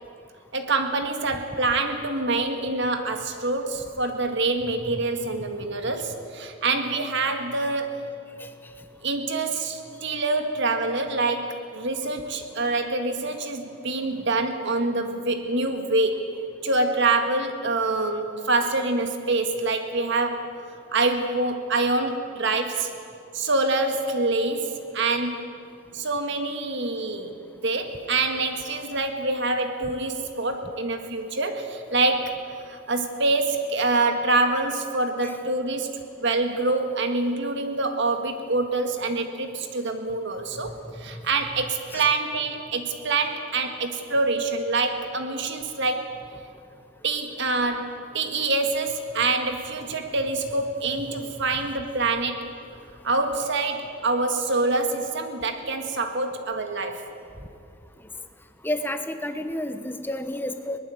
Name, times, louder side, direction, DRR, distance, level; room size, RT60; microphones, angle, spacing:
voice 1, 0.5-8.1 9.0-20.6 20.9-22.9 23.3-25.4 25.9-32.4 32.7-46.0 47.0-52.5 53.0-57.1, right 3 dB, 60° right, 6 dB, 1.8 m, -26 dB
voice 2, 58.6-60.8, left 1 dB, 10° left, 8 dB, 1.1 m, -31 dB
22.5 x 20.0 x 7.9 m, 2.4 s
head